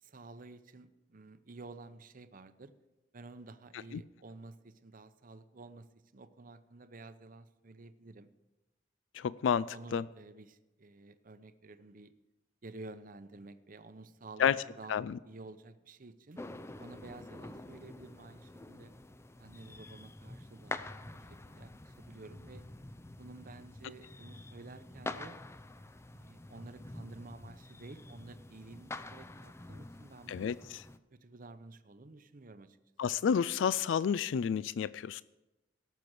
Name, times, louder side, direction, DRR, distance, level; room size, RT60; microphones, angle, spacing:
voice 1, 0.0-2.7 3.1-5.9 6.1-8.3 9.7-12.1 12.6-15.0 15.2-16.4 16.8-18.9 19.4-20.8 21.1-22.6 23.2-25.4 26.1-30.5 31.1-32.8, right 2 dB, 45° right, 11 dB, 0.7 m, -51 dB
voice 2, 9.1-10.0 14.4-14.6 14.9-15.2 30.3-30.5 33.0-35.2, left 7 dB, 75° left, 18 dB, 0.3 m, -30 dB
sound 1, 16.4-31.0, left 2 dB, 15° left, 0.5 m, -47 dB
17.0 x 6.8 x 6.2 m, 1.0 s
head